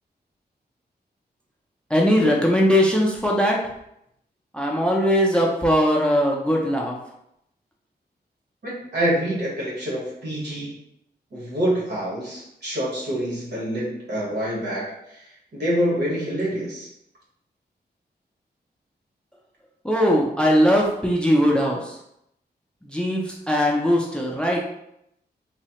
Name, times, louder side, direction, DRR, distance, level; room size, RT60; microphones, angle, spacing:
voice 1, 1.9-3.6 4.5-6.9 19.8-22.0 22.9-24.6, equal, 5° left, -1 dB, 0.4 m, -20 dB
voice 2, 8.6-10.8 11.3-16.9, equal, 75° right, -5 dB, 1.2 m, -26 dB
3.1 x 2.1 x 2.8 m, 0.78 s
wide cardioid pair, 145°, 17 cm